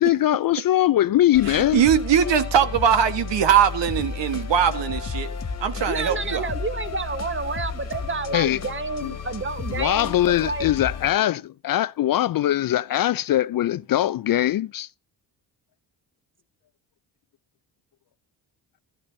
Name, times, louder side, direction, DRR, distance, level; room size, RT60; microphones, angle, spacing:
voice 1, 0.0-1.8 8.3-8.6 9.0-9.1 9.8-14.9, left 13 dB, 50° left, 0.5 m, -21 dB
sound 1, 1.3-11.1, left 5 dB, 35° left, 1.8 m, -33 dB
voice 2, 1.5-5.3 5.6-6.5, right 8 dB, 70° right, 1.5 m, -21 dB
voice 3, 5.9-10.2 10.4-10.7, right 4 dB, 25° right, 1.3 m, -30 dB
13.0 x 12.0 x 2.7 m
cardioid pair, 75°, 45 cm